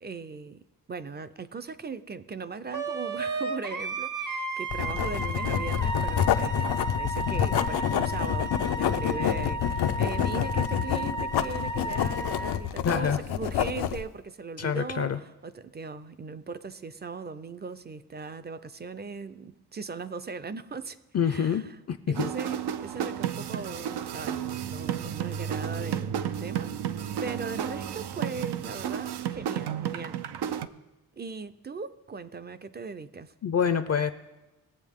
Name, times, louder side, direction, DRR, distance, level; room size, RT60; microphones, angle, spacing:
voice 1, 0.0-21.0 21.2-21.8 22.1-26.7 27.0-30.2 31.1-33.3, right 4 dB, 25° right, 0.4 m, -39 dB
Wind instrument woodwind instrument, 2.7-12.6, right 2 dB, 50° right, 1.0 m, -34 dB
Writing, 4.7-14.0, left 9 dB, 85° left, 0.6 m, -28 dB
voice 2, 12.8-13.2 14.6-15.2 21.1-22.3 33.4-34.1, left 7 dB, 40° left, 0.5 m, -26 dB
sound 1, 22.1-30.7, right 9 dB, 90° right, 0.6 m, -32 dB
20.0 x 7.9 x 3.6 m
wide cardioid pair, 130°, 38 cm